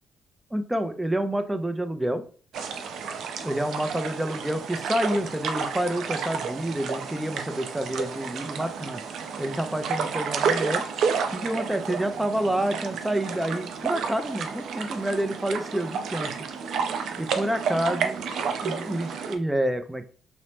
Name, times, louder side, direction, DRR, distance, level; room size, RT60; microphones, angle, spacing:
voice 1, 0.5-2.2 3.4-9.0 9.4-10.8 11.3-16.3 17.2-20.1, right 1 dB, 10° right, 8 dB, 0.4 m, -28 dB
sound 1, 2.5-19.4, right 6 dB, 75° right, 0.4 m, -31 dB
2.9 x 2.0 x 3.1 m, 0.43 s
cardioid pair, 90°, 0 cm